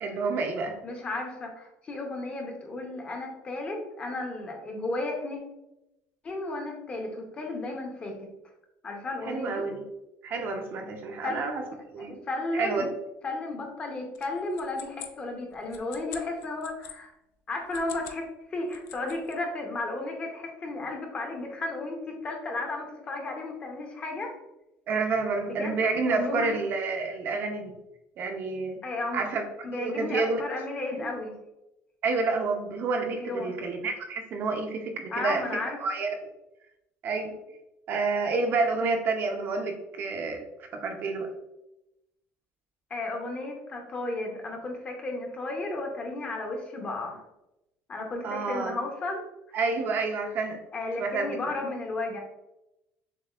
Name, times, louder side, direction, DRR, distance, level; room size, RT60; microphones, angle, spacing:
voice 1, 0.0-0.8 9.2-9.9 10.2-11.6 11.9-12.2 12.5-12.9 24.9-27.7 28.2-28.8 29.1-30.4 31.0-31.1 32.0-35.4 35.8-36.1 37.0-37.3 37.9-40.4 40.7-41.3 48.2-48.8 49.5-50.6 51.0-51.5, right 4 dB, 40° right, 3 dB, 0.5 m, -29 dB
voice 2, 0.8-5.4 6.2-8.1 8.8-9.6 11.2-11.5 12.0-12.9 13.2-17.1 17.5-18.2 18.5-24.3 25.5-26.5 28.8-29.2 29.6-31.3 33.2-33.5 35.1-35.8 42.9-47.2 47.9-49.3 50.7-52.2, left 2 dB, 25° left, 2 dB, 0.7 m, -33 dB
sound 1, 14.1-17.0 17.6-18.2 18.5-19.4, left 9 dB, 65° left, 0.5 m, -45 dB
6.7 x 2.5 x 2.3 m, 0.91 s
cardioid pair, 175°, 5 cm